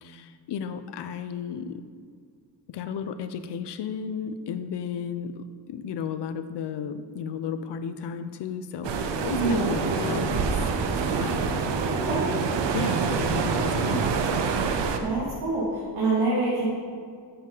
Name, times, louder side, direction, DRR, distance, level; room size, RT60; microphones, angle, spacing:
voice 1, 0.0-1.8 2.7-10.5 10.9-11.7 12.7-14.1, left 7 dB, 75° left, 10 dB, 0.6 m, -34 dB
sound 1, 8.8-15.0, right 5 dB, 85° right, 0.8 m, -26 dB
voice 2, 9.3-10.1 11.8-12.3 15.0-16.6, right 2 dB, 60° right, -7 dB, 2.3 m, -27 dB
7.8 x 7.3 x 3.9 m, 2.1 s
cardioid pair, 115°, 42 cm